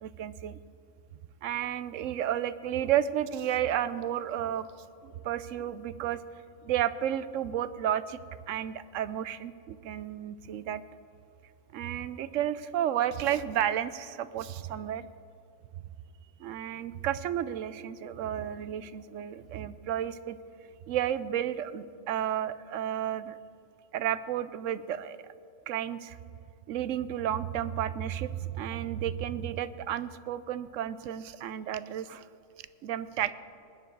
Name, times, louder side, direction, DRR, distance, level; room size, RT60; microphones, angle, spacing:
voice 1, 0.0-0.6 1.4-4.7 5.0-6.2 6.6-8.2 8.5-10.8 11.7-15.1 16.4-20.4 20.9-23.4 23.9-25.2 25.7-26.2 26.7-32.2 32.8-33.3, right 10 dB, 75° right, 14 dB, 0.9 m, -32 dB
20.0 x 9.4 x 4.7 m, 2.4 s
omnidirectional pair, 1.3 m